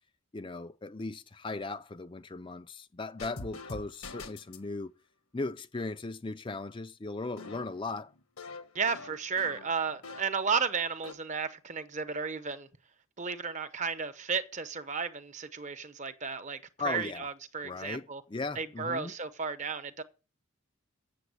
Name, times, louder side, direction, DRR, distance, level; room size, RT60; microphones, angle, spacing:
voice 1, 0.3-4.9 5.3-8.1 16.8-17.3 17.6-19.1, left 3 dB, 25° left, 0.4 m, -37 dB
sound 1, 3.2-4.7 7.4-10.5 10.8-11.1, left 3 dB, 90° left, 1.6 m, -45 dB
voice 2, 8.7-12.7 13.2-18.2 18.6-20.0, right 5 dB, 35° right, 0.8 m, -33 dB
8.3 x 7.0 x 8.0 m
head